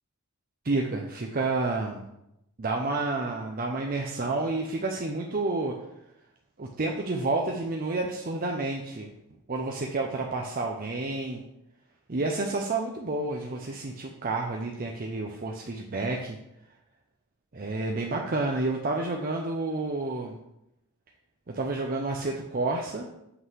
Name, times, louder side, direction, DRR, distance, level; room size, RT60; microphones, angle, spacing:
voice 1, 0.6-2.1 2.6-5.8 6.6-9.1 9.5-11.4 12.1-16.4 17.5-20.4 21.5-23.1, right 2 dB, 40° right, 1 dB, 0.7 m, -30 dB
7.9 x 3.9 x 6.3 m, 0.84 s
head